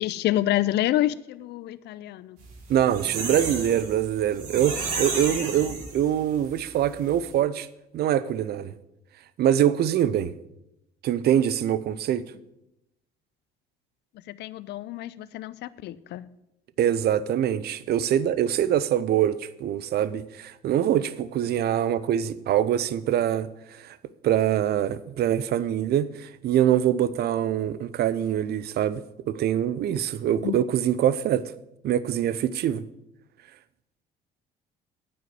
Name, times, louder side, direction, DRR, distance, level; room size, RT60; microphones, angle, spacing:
voice 1, 0.0-2.4 14.3-16.3 30.4-30.6, left 14 dB, 60° left, 0.5 m, -28 dB
sound 1, 2.5-6.4 6.8-6.9 7.1-7.3, right 4 dB, 80° right, 2.6 m, -32 dB
voice 2, 2.7-7.7 7.9-8.7 9.4-10.3 11.0-12.2 16.8-24.0 24.2-31.5 31.8-32.8, right 10 dB, 55° right, 0.6 m, -24 dB
9.2 x 5.5 x 7.9 m
hypercardioid pair, 65°, 19 cm